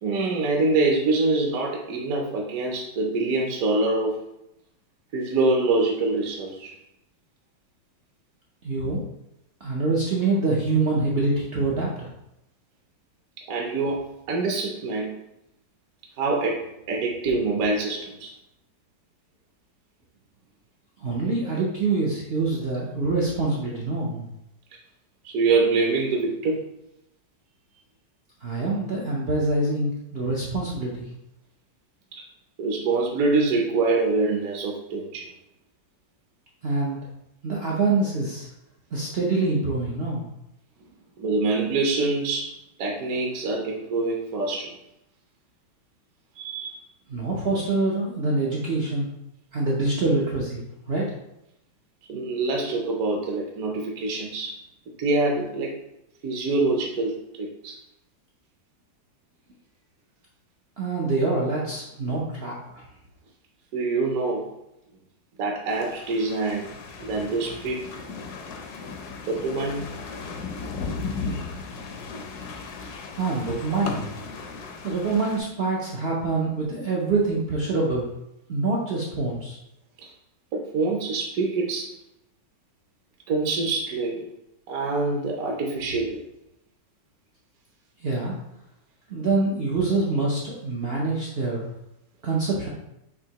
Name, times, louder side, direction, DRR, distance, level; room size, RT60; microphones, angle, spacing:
voice 1, 0.0-4.2 5.1-6.7 13.5-15.2 16.2-18.3 25.2-26.6 32.1-32.2 32.6-35.3 41.2-42.5 42.8-44.7 46.4-46.7 52.1-54.6 55.0-55.7 56.2-57.8 63.7-64.5 65.4-67.8 69.3-69.9 80.0-80.1 80.5-81.9 83.3-84.2 84.7-86.2, right 3 dB, 65° right, 0 dB, 0.9 m, -25 dB
voice 2, 8.6-9.0 9.6-12.1 21.0-24.3 28.4-31.1 36.6-37.0 37.4-38.5 38.9-40.3 47.1-49.1 49.5-51.1 60.8-62.8 73.2-74.1 74.8-78.1 78.5-79.6 88.0-88.3 89.1-91.7 92.2-92.7, right 3 dB, 80° right, -4 dB, 0.5 m, -25 dB
sound 1, 65.7-75.4, left 4 dB, 70° left, 1.1 m, -36 dB
6.6 x 2.7 x 2.9 m, 0.83 s
omnidirectional pair, 2.0 m